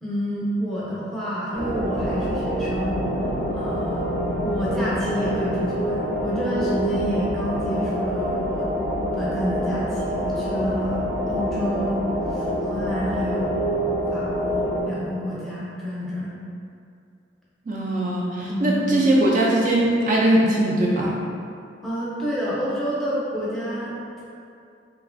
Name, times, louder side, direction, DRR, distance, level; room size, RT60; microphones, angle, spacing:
voice 1, 0.0-3.0 3.5-8.7 9.1-12.0 12.3-13.7 14.1-16.3 18.5-18.8 21.8-24.2, equal, ahead, -9 dB, 0.6 m, -29 dB
sound 1, 1.5-14.8, equal, 85° right, 0.7 m, -26 dB
voice 2, 17.7-21.1, right 1 dB, 40° right, -4 dB, 0.3 m, -20 dB
3.0 x 2.5 x 2.4 m, 2.4 s
head